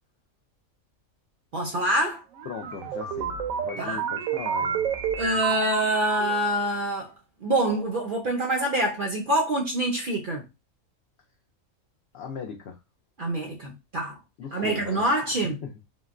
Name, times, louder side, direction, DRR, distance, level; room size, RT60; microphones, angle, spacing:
voice 1, 1.5-2.2 3.8-4.0 5.2-7.1 7.4-10.4 13.2-14.2 14.5-15.6, right 1 dB, 60° right, 0.5 m, -26 dB
sound 1, 2.3-6.5, right 7 dB, 75° right, 1.0 m, -30 dB
voice 2, 2.4-3.3 3.6-4.8 12.1-12.8 14.4-15.0 15.6-15.7, left 7 dB, 65° left, 0.6 m, -38 dB
3.7 x 2.0 x 2.4 m
omnidirectional pair, 1.4 m